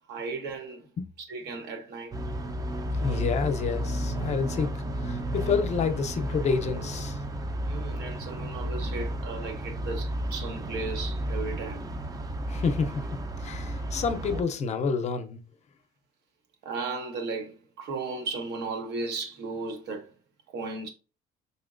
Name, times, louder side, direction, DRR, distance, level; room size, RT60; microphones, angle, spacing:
voice 1, 0.1-0.8 1.3-2.1 7.6-11.9 16.6-20.1 20.5-20.9, right 3 dB, 85° right, 0.9 m, -35 dB
sound 1, 2.1-14.4, equal, 20° right, 0.4 m, -32 dB
voice 2, 2.9-7.2 12.5-13.1 13.4-15.4, left 5 dB, 40° left, 0.6 m, -29 dB
4.2 x 2.9 x 2.5 m
cardioid pair, 110°, 17 cm